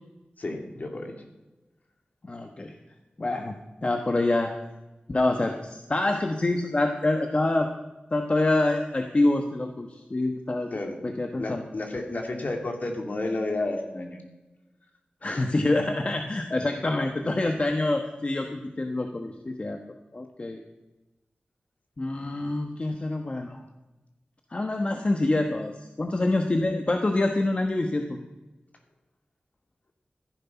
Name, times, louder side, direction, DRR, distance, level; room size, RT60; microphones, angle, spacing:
voice 1, 0.4-1.1 10.7-11.0 11.4-14.2 15.2-15.5, left 2 dB, 55° left, 3 dB, 2.7 m, -31 dB
voice 2, 2.2-2.7 3.2-3.5 3.8-4.5 5.1-7.7 8.1-10.7 11.0-11.6 15.2-19.8 20.1-20.6 22.0-23.6 24.5-28.2, left 2 dB, 40° left, 4 dB, 1.2 m, -26 dB
14.5 x 11.0 x 5.9 m, 1.0 s
wide cardioid pair, 80°, 3 cm